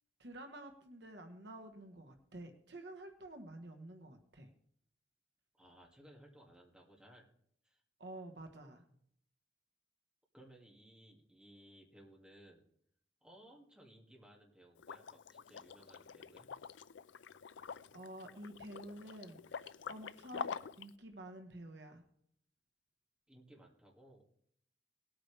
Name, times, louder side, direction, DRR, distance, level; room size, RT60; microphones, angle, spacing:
voice 1, 0.2-4.5 8.0-8.8 17.9-22.0, right 1 dB, 65° right, 5 dB, 1.4 m, -50 dB
voice 2, 5.6-7.3 7.6-7.8 10.3-12.6 13.2-16.5 23.3-24.2, right 1 dB, 5° right, -1 dB, 2.2 m, -60 dB
Liquid, 14.8-20.9, left 6 dB, 80° left, 0.4 m, -47 dB
19.0 x 8.8 x 3.4 m, 0.67 s
head